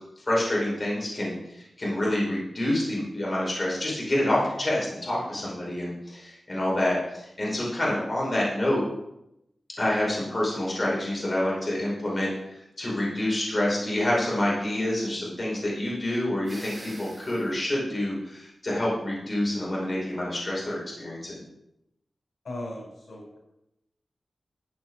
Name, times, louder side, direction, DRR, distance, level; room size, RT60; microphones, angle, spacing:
voice 1, 0.3-8.8 9.8-21.4, left 1 dB, 30° left, -5 dB, 5.3 m, -27 dB
voice 2, 5.3-5.7 22.4-23.4, left 1 dB, 75° left, -2 dB, 5.6 m, -39 dB
sound 1, 16.4-17.5, right 1 dB, 35° right, 5.7 m, -44 dB
14.5 x 9.0 x 4.8 m, 0.85 s
wide cardioid pair, 90°, 0 cm